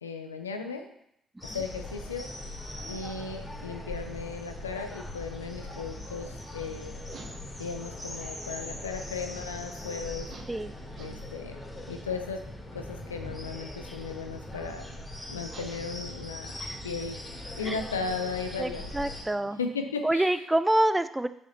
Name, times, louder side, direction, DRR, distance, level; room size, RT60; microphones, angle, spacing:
voice 1, 0.0-0.9 1.4-2.3 2.9-6.9 7.6-10.3 11.0-11.6 11.9-12.5 12.7-14.9 15.3-16.5 16.8-17.2 17.6-18.9 19.6-20.3, left 5 dB, 80° left, 6 dB, 0.5 m, -36 dB
sound 1, 1.4-19.2, left 1 dB, 15° left, 2.5 m, -40 dB
sound 2, 5.7-19.9, right 5 dB, 45° right, 0.8 m, -54 dB
voice 2, 18.6-19.6 20.0-21.3, right 1 dB, 10° right, 13 dB, 0.4 m, -27 dB
6.9 x 4.9 x 3.9 m, 0.75 s
figure-of-eight pair, 45°, 0 cm